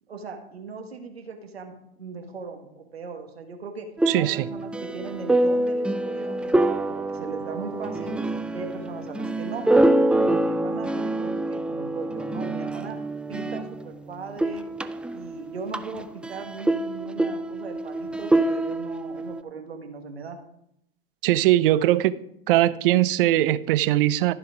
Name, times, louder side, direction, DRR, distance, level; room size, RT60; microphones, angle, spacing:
voice 1, 0.1-3.9 4.2-8.2 8.5-9.7 10.0-13.0 13.3-14.6 15.1-20.4, right 4 dB, 90° right, 1.6 m, -38 dB
sound 1, 4.0-14.0 14.3-19.4, right 1 dB, 5° right, 0.3 m, -26 dB
voice 2, 4.1-4.5 21.2-22.1 22.5-24.3, right 14 dB, 60° right, 0.7 m, -20 dB
14.0 x 5.7 x 4.9 m
hypercardioid pair, 95°, 30 cm